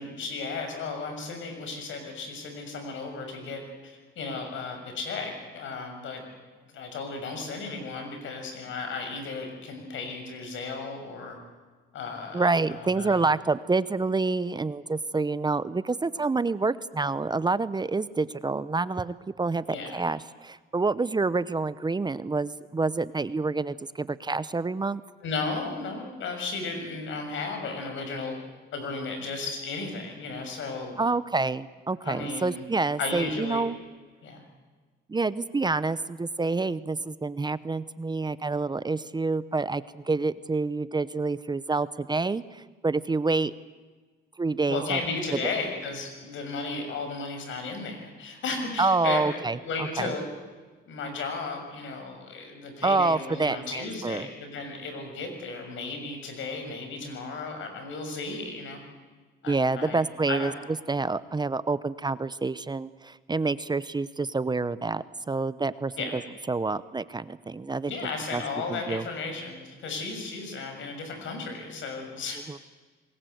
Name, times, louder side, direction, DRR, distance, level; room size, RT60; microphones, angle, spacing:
voice 1, 0.0-6.2 6.7-11.4 11.9-13.2 19.7-20.0 25.2-28.4 28.7-31.0 32.0-32.6 33.0-33.6 34.2-34.4 44.7-49.2 49.6-50.3 50.9-58.8 59.4-60.0 60.3-60.5 66.0-66.1 67.9-72.4, left 4 dB, 75° left, 5 dB, 6.5 m, -34 dB
voice 2, 12.3-25.0 31.0-33.8 35.1-43.5 44.4-45.0 45.3-45.4 48.8-50.1 52.8-54.3 59.5-60.5 60.9-66.2 66.5-68.0 68.3-68.4 68.7-69.0 72.5-72.6, right 3 dB, 20° right, 16 dB, 0.8 m, -27 dB
27.0 x 21.0 x 8.0 m, 1.4 s
cardioid pair, 90°, 20 cm